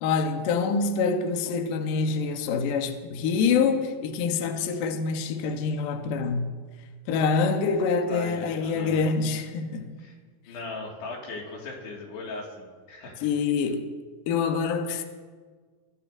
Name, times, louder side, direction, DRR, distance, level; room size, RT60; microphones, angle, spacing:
voice 1, 0.0-6.5 7.1-10.0 13.2-13.9 14.3-15.0, left 5 dB, 70° left, 2.3 m, -26 dB
voice 2, 8.1-9.0 10.0-10.2 10.5-13.2, left 3 dB, 90° left, 4.1 m, -38 dB
24.0 x 13.5 x 2.6 m
omnidirectional pair, 4.6 m